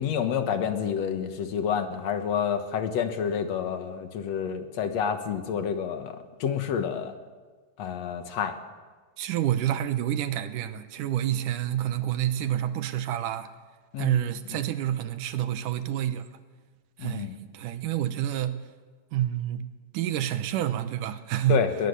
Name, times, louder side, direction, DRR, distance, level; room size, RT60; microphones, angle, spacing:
voice 1, 0.0-7.1 7.8-8.6 13.9-14.2 14.5-14.6 17.0-17.4 21.5-21.9, left 7 dB, 60° left, 2.3 m, -29 dB
voice 2, 9.2-13.5 14.0-16.3 17.0-17.3 17.5-18.6 19.1-19.7 19.9-21.6, right 11 dB, 75° right, 2.4 m, -28 dB
20.5 x 20.0 x 6.8 m
omnidirectional pair, 3.8 m